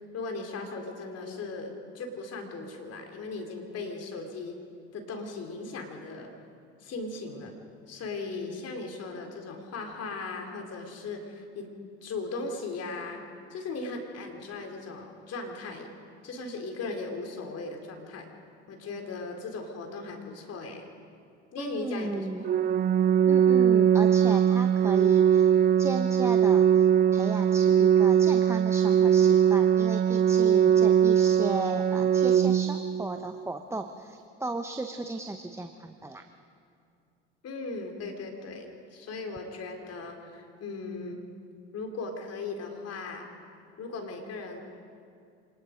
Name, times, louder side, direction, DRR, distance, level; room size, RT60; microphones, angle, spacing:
voice 1, 0.0-4.6 4.9-6.3 6.8-7.5 7.9-11.7 12.0-13.2 13.5-15.9 16.2-18.3 18.7-20.9 21.5-22.5 37.4-41.2 41.7-43.3 43.8-44.6, left 3 dB, 45° left, 3 dB, 3.7 m, -38 dB
voice 2, 21.6-22.5 23.3-25.5 25.8-36.2, right 2 dB, 10° right, 6 dB, 1.0 m, -35 dB
Organ, 22.4-33.4, right 9 dB, 25° right, 0.5 m, -21 dB
25.5 x 19.5 x 5.2 m, 2.4 s
hypercardioid pair, 70°, 34 cm